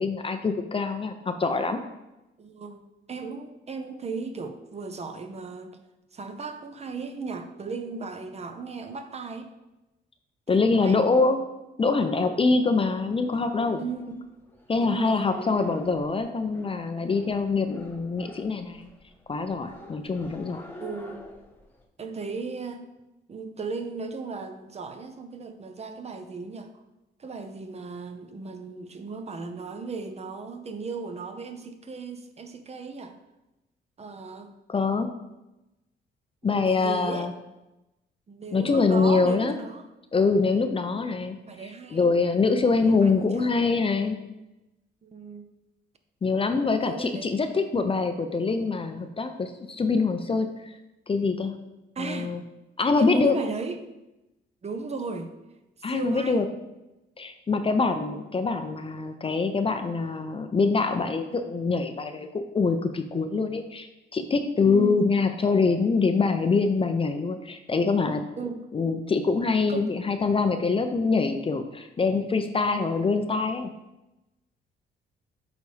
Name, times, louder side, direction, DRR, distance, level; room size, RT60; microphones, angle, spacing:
voice 1, 0.0-1.8 10.5-11.4 11.8-13.8 14.7-18.9 19.3-20.6 34.7-35.1 36.4-37.3 38.5-39.6 40.1-41.4 41.6-44.2 46.2-50.7 51.1-51.5 52.0-52.4 52.8-53.4 55.8-56.5 57.2-63.9 64.1-68.2 68.7-73.7, left 4 dB, 30° left, 7 dB, 0.5 m, -24 dB
voice 2, 2.4-5.8 6.1-9.5 10.5-11.1 13.8-14.2 14.8-15.3 20.2-20.4 20.8-21.3 22.0-22.9 23.3-26.7 27.2-33.2 34.0-34.5 36.4-37.3 38.3-39.8 40.7-40.9 41.5-42.1 42.8-43.5 45.0-45.5 46.8-47.5 52.0-52.3 53.0-53.8 54.6-55.3 55.8-56.5 64.6-65.1 68.4-68.6 69.7-69.9, right 4 dB, 35° right, 7 dB, 0.7 m, -36 dB
sound 1, 12.9-21.8, left 1 dB, 10° left, 1.0 m, -47 dB
8.2 x 4.0 x 3.3 m, 0.98 s
cardioid pair, 90°, 20 cm